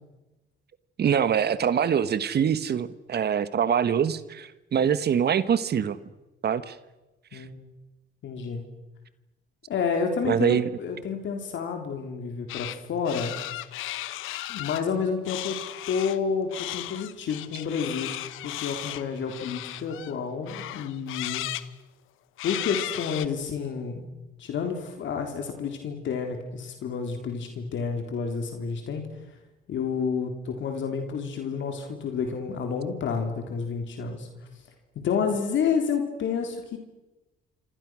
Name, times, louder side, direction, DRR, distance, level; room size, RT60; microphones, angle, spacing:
voice 1, 1.0-6.0 6.4-6.7 7.3-7.4 10.2-10.7, right 8 dB, 55° right, 14 dB, 1.4 m, -24 dB
voice 2, 8.2-8.6 9.7-13.3 14.5-15.6 15.9-18.1 18.4-21.5 22.4-24.1 24.4-29.1 29.7-34.3 35.0-36.8, left 6 dB, 70° left, 4 dB, 3.6 m, -30 dB
sound 1, 12.5-12.8 13.0-14.8 15.2-16.2 16.5-20.1 20.5-21.7 22.4-23.3, left 15 dB, 90° left, 1.0 m, -35 dB
28.0 x 26.0 x 6.3 m, 1.1 s
cardioid pair, 90°, 20 cm